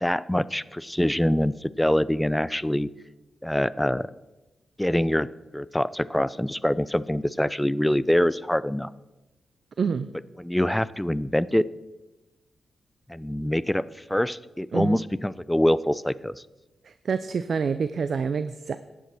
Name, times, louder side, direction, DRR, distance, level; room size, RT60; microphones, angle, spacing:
voice 1, 0.0-2.9 3.4-4.1 4.8-8.9 10.4-11.7 13.1-16.3, left 1 dB, 10° left, 18 dB, 0.5 m, -24 dB
voice 2, 9.8-10.1 14.7-15.0 16.8-18.8, right 5 dB, 65° right, 12 dB, 0.5 m, -27 dB
11.5 x 8.1 x 6.0 m, 1.1 s
supercardioid pair, 50°, 0 cm